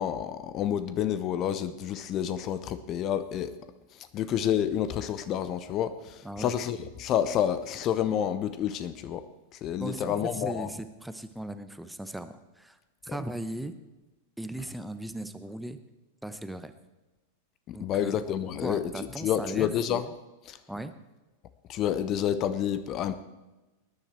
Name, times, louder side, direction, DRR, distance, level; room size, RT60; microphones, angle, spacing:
voice 1, 0.0-3.6 3.9-9.3 9.5-10.7 13.1-13.2 17.7-20.1 20.5-20.6 21.7-23.2, left 9 dB, 35° left, 13 dB, 0.7 m, -29 dB
voice 2, 9.8-12.8 13.0-13.7 14.4-15.8 16.2-16.7 17.7-18.2 18.6-19.7 20.7-20.9, right 1 dB, 5° right, 10 dB, 0.8 m, -37 dB
19.5 x 10.0 x 4.5 m, 1.1 s
figure-of-eight pair, 90°, 0 cm